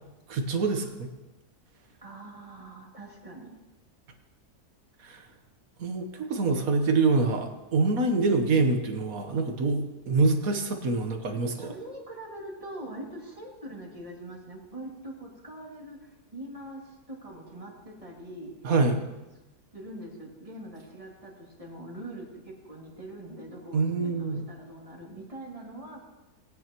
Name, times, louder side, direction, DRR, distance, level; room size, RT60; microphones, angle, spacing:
voice 1, 0.3-1.1 5.0-5.3 5.8-11.7 18.6-19.0 23.7-24.4, right 3 dB, 65° right, 5 dB, 1.5 m, -25 dB
voice 2, 2.0-3.6 11.6-18.5 19.7-26.1, right 1 dB, 20° right, -2 dB, 2.4 m, -43 dB
19.5 x 9.5 x 3.0 m, 1.1 s
omnidirectional pair, 1.6 m